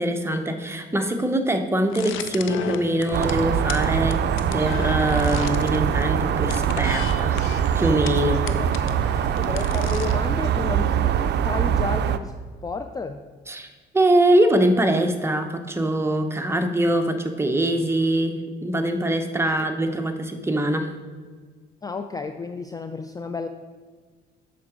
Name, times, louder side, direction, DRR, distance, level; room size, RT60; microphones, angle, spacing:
voice 1, 0.0-4.2 4.5-7.4 7.7-8.5 13.5-13.7 13.9-20.9, right 1 dB, 15° right, 6 dB, 0.8 m, -23 dB
sound 1, 1.9-10.4, left 9 dB, 90° left, 0.5 m, -36 dB
sound 2, 3.1-12.2, right 9 dB, 60° right, 0.4 m, -23 dB
voice 2, 9.0-12.3 12.6-13.2 21.8-23.5, left 4 dB, 20° left, 7 dB, 0.3 m, -32 dB
7.2 x 4.7 x 4.9 m, 1.5 s
cardioid pair, 90°, 20 cm